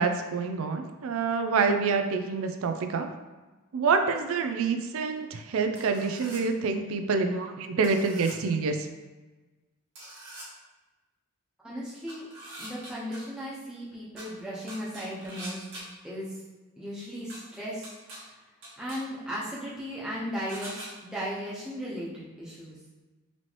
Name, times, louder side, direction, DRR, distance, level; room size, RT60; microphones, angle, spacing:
voice 1, 0.0-3.1 3.7-8.9, right 4 dB, 75° right, 7 dB, 0.4 m, -27 dB
sound 1, 5.8-6.4 7.8-8.3 10.0-10.5 12.1-13.2 14.2-14.3 14.7-15.8 17.3-17.4 17.8-18.2 18.6-19.0 20.5-20.9, right 1 dB, 55° right, 1.4 m, -43 dB
voice 2, 11.6-12.2 12.6-15.6 16.0-16.3 16.8-17.9 18.8-22.8, equal, 5° right, -8 dB, 0.9 m, -36 dB
4.1 x 3.0 x 3.0 m, 1.2 s
head